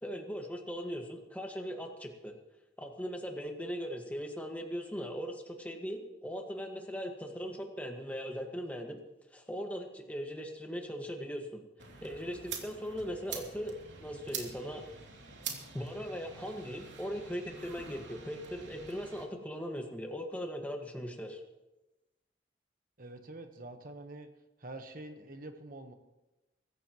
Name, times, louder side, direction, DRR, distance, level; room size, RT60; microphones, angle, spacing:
voice 1, 0.0-2.3 2.8-9.0 9.3-11.6 12.0-13.7 14.0-14.8 15.7-21.4, equal, 10° left, 2 dB, 1.7 m, -39 dB
sound 1, 11.8-19.2, right 6 dB, 85° right, 2.8 m, -45 dB
voice 2, 23.0-24.3 24.6-25.9, right 2 dB, 50° right, 6 dB, 1.2 m, -46 dB
23.5 x 14.0 x 3.1 m, 1.0 s
head